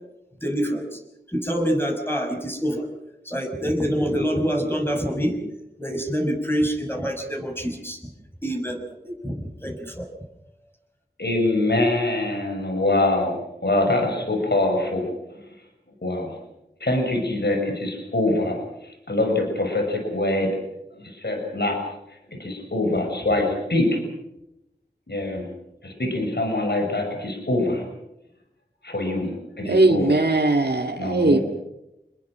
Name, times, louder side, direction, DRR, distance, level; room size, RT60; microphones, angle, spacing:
voice 1, 0.4-1.0 1.3-2.9 3.2-5.4 5.8-8.0 8.4-10.1, equal, 15° left, 6.4 m, -26 dB
voice 2, 11.2-13.4 13.6-15.4 16.0-16.4 16.8-20.5 20.9-21.8 22.3-24.0 25.1-25.5 25.8-27.8 28.8-30.1 31.0-31.4, left 2 dB, 80° left, 6.1 m, -24 dB
voice 3, 29.7-31.4, right 2 dB, 70° right, 2.1 m, -19 dB
28.0 x 21.5 x 6.2 m
wide cardioid pair, 40°, 17 cm